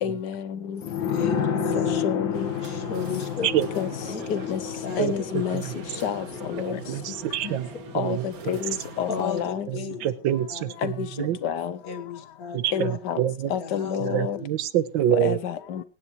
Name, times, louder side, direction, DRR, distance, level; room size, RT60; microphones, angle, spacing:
voice 1, 0.0-0.8 1.8-2.5 3.8-3.9 4.3-4.6 5.0-5.6 6.0-6.8 7.9-9.7 10.8-11.1 11.4-11.7 12.7-13.2 13.5-14.4 15.1-15.8, left 8 dB, 70° left, 1.4 m, -29 dB
sound 1, 0.8-10.1 10.4-10.5, left 7 dB, 85° left, 2.1 m, -31 dB
voice 2, 1.0-2.0 2.6-3.5 4.1-4.2 4.8-5.2 6.5-6.7 7.1-7.2 7.4-7.6 9.1-10.1 10.5-10.6 11.8-13.0 13.6-14.5, left 6 dB, 50° left, 1.8 m, -34 dB
sound 2, 2.3-9.4, right 8 dB, 55° right, 1.4 m, -44 dB
voice 3, 5.0-5.7 6.7-7.7 8.0-8.2 9.7-11.4 12.5-13.5 14.0-15.4, right 11 dB, 85° right, 1.6 m, -26 dB
24.5 x 9.5 x 3.1 m
omnidirectional pair, 2.0 m